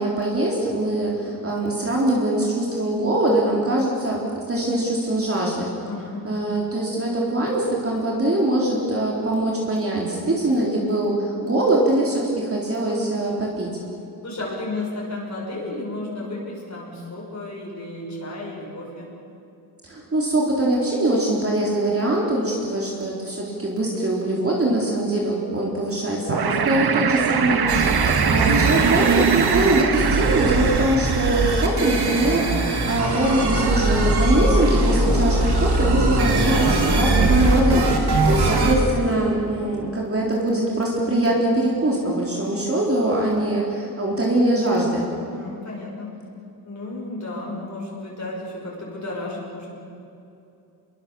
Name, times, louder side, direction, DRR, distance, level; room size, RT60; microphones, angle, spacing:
voice 1, 0.0-5.7 6.2-13.7 19.8-45.1, right 1 dB, 35° right, -3 dB, 3.9 m, -22 dB
voice 2, 5.8-6.8 14.2-19.1 38.0-38.4 45.3-46.2 46.6-49.7, left 2 dB, 45° left, -3 dB, 6.2 m, -33 dB
sound 1, 26.3-31.7, right 6 dB, 70° right, 1.4 m, -24 dB
sound 2, 27.7-38.7, right 4 dB, 85° right, 3.4 m, -22 dB
sound 3, 33.2-38.8, left 2 dB, 85° left, 6.4 m, -24 dB
29.5 x 22.0 x 7.1 m, 2.7 s
wide cardioid pair, 175°, 39 cm